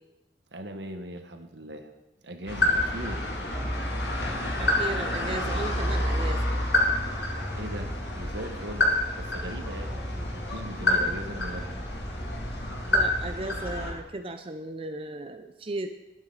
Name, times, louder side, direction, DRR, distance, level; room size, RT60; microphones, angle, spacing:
voice 1, 0.5-1.9 2.2-3.3 7.5-8.9 9.2-11.7, right 1 dB, 80° right, 6 dB, 1.5 m, -39 dB
sound 1, 2.5-13.9, left 1 dB, 75° left, 2.9 m, -28 dB
voice 2, 4.6-6.4 12.8-15.9, right 2 dB, 30° right, 6 dB, 0.6 m, -36 dB
20.0 x 8.9 x 4.1 m, 1.0 s
head